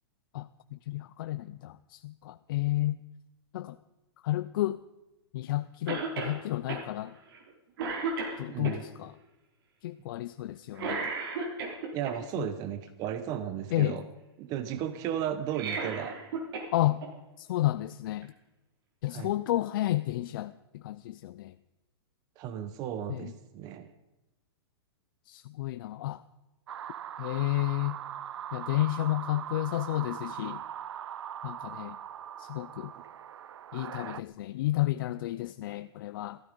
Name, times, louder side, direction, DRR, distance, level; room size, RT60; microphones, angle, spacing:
voice 1, 0.9-3.0 3.5-3.8 4.2-4.8 5.3-7.1 8.4-9.1 9.8-11.1 12.4-12.5 13.7-14.0 16.7-17.0 17.4-18.3 19.0-21.5 23.1-23.3 25.3-26.2 27.2-28.0 28.5-30.6 31.4-32.0 32.4-32.9 33.7-36.4, left 15 dB, 55° left, 13 dB, 0.5 m, -31 dB
Cough, 5.9-6.4 6.7-6.8 7.3-7.5 7.8-8.8 10.7-12.1 15.4-16.7 17.0-17.1 18.2-18.3, right 4 dB, 60° right, 4.1 m, -34 dB
voice 2, 8.5-8.8 11.9-14.1 14.4-16.2 19.1-19.3 22.4-23.9 33.0-33.1, right 10 dB, 30° right, 11 dB, 0.9 m, -34 dB
sound 1, 26.7-34.2, right 10 dB, 90° right, 0.7 m, -41 dB
16.5 x 14.5 x 5.2 m, 1.0 s
hypercardioid pair, 155°, 14 cm